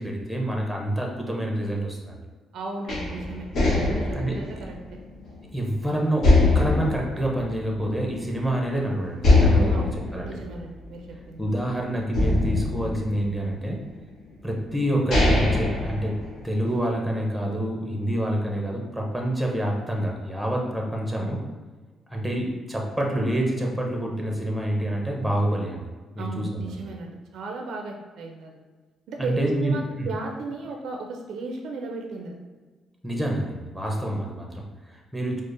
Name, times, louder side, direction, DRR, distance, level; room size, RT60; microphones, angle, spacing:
voice 1, 0.0-2.2 4.1-4.6 5.5-10.4 11.4-13.8 14.4-16.2 16.4-21.4 22.1-25.9 26.1-26.9 29.2-30.1 33.0-35.4, right 1 dB, ahead, -1 dB, 0.7 m, -27 dB
voice 2, 2.5-3.5 3.9-4.8 9.7-11.5 26.2-28.6 29.1-32.4, right 3 dB, 75° right, 2 dB, 0.4 m, -35 dB
sound 1, 2.9-5.7 6.2-8.2 8.5-8.6 9.2-11.6 12.1-13.7 14.5-14.6 14.9-16.7, left 2 dB, 65° left, 1.1 m, -23 dB
4.9 x 2.0 x 2.6 m, 1.4 s
cardioid pair, 90°, 0 cm